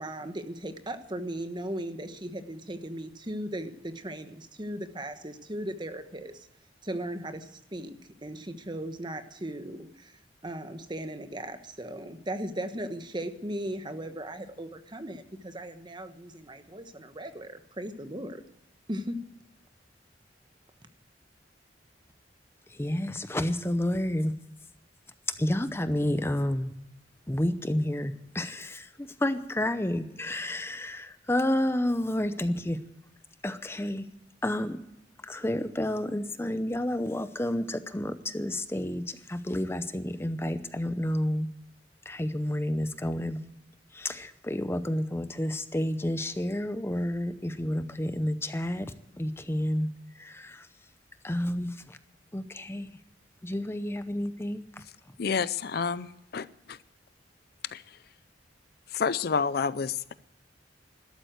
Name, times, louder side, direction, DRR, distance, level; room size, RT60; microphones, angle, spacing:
voice 1, 0.0-6.5 6.8-7.9 8.2-18.4 18.9-19.2, right 1 dB, 25° right, 8 dB, 1.2 m, -37 dB
voice 2, 22.7-24.3 25.4-26.7 27.3-32.8 33.4-34.0 34.4-34.8 35.2-41.5 42.1-43.4 43.9-49.9 50.2-50.7 51.2-52.0 52.3-52.9 53.4-54.7, left 1 dB, 15° left, 10 dB, 0.7 m, -30 dB
voice 3, 55.2-56.8 57.7-57.8 58.9-60.1, left 5 dB, 55° left, 17 dB, 0.5 m, -29 dB
12.5 x 12.5 x 7.9 m, 0.84 s
head